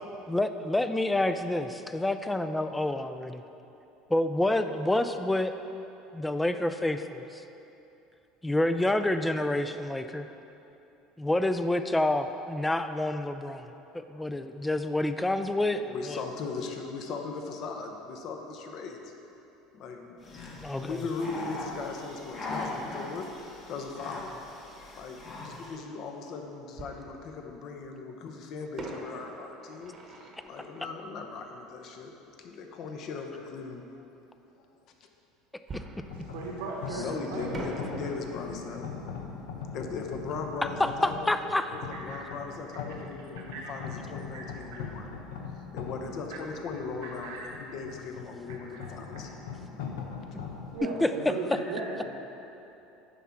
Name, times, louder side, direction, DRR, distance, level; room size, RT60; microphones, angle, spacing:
voice 1, 0.3-3.4 4.1-5.5 6.1-7.4 8.4-10.3 11.2-13.7 13.9-16.2 20.6-21.0 35.7-35.8 40.8-41.7 51.0-51.1, left 1 dB, 10° left, 9 dB, 0.4 m, -28 dB
voice 2, 14.1-14.5 15.7-19.1 19.7-24.3 24.9-32.1 32.4-33.8 34.6-34.7 35.0-35.1 36.9-38.8 39.7-41.3 41.7-45.1 45.5-49.3, left 4 dB, 55° left, 3 dB, 0.9 m, -39 dB
sound 1, 20.2-25.8, left 2 dB, 35° left, 1.4 m, -40 dB
Fireworks, 26.8-27.9 28.8-32.2 35.7-37.1 37.5-42.1 42.3-42.4 42.9-43.2, right 2 dB, 30° right, 1.0 m, -45 dB
sound 2, 36.0-50.8, left 5 dB, 90° left, 0.8 m, -41 dB
voice 3, 36.1-37.7 42.1-42.2 43.5-43.7 44.3-44.4 46.3-46.4 47.0-47.5 48.5-48.9 50.7-52.0, right 3 dB, 85° right, -2 dB, 1.2 m, -37 dB
9.9 x 3.7 x 5.8 m, 2.9 s
supercardioid pair, 110°, 0 cm